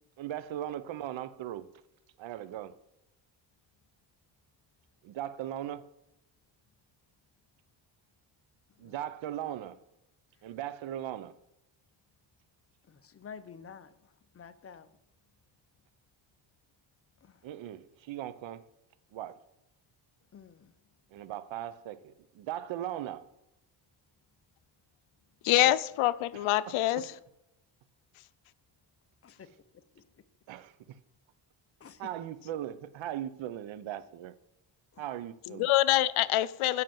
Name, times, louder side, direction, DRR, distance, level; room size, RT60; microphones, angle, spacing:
voice 1, 0.2-1.7 2.2-2.8 5.0-5.9 8.8-9.8 10.4-11.4 17.4-18.6 19.1-19.4 21.1-23.3 25.6-25.7 26.3-27.0 30.5-31.0 32.0-34.4 35.0-35.7, right 12 dB, 70° right, 0.7 m, -39 dB
voice 2, 12.9-13.9 14.3-14.9 17.2-17.4 20.3-20.7 29.2-29.5 31.8-32.0 34.9-35.0, left 6 dB, 30° left, 0.6 m, -49 dB
voice 3, 25.4-27.1 35.5-36.8, left 15 dB, 85° left, 0.6 m, -25 dB
7.7 x 5.7 x 7.6 m
cardioid pair, 110°, 48 cm